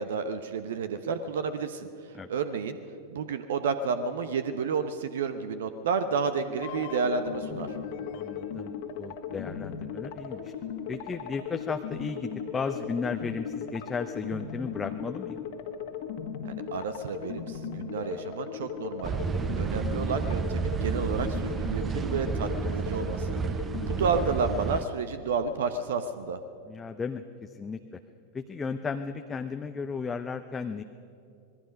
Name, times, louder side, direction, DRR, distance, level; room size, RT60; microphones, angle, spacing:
voice 1, 0.0-2.8 3.1-7.7 16.4-19.1 19.5-23.4 23.9-26.4, right 5 dB, 60° right, 10 dB, 1.0 m, -31 dB
sound 1, 6.6-24.6, left 7 dB, 50° left, 1.7 m, -37 dB
voice 2, 8.1-8.7 9.0-10.5 10.9-15.5 19.6-19.8 23.8-23.9 26.7-28.0 28.3-30.8, left 5 dB, 15° left, 7 dB, 0.7 m, -35 dB
sound 2, 19.0-24.8, right 6 dB, 20° right, 0.7 m, -31 dB
26.0 x 20.5 x 5.3 m, 2.5 s
figure-of-eight pair, 90°, 0 cm